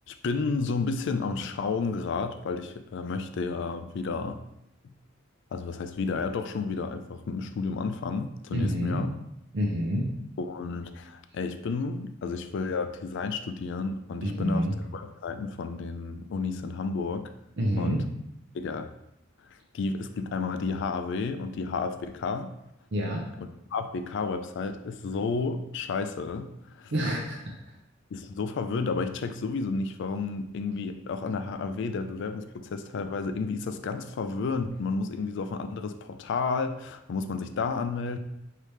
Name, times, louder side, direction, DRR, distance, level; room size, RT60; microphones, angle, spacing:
voice 1, 0.1-4.4 5.5-9.1 10.4-17.3 17.8-18.0 18.5-18.9 19.5-22.5 23.4-26.9 28.1-38.2, left 4 dB, 60° left, 8 dB, 0.4 m, -31 dB
voice 2, 8.5-9.0 9.5-10.1 14.2-14.7 17.6-18.1 22.9-23.3 26.9-27.4 27.6-27.7, equal, 60° right, -2 dB, 0.6 m, -27 dB
4.9 x 2.8 x 3.2 m, 0.82 s
head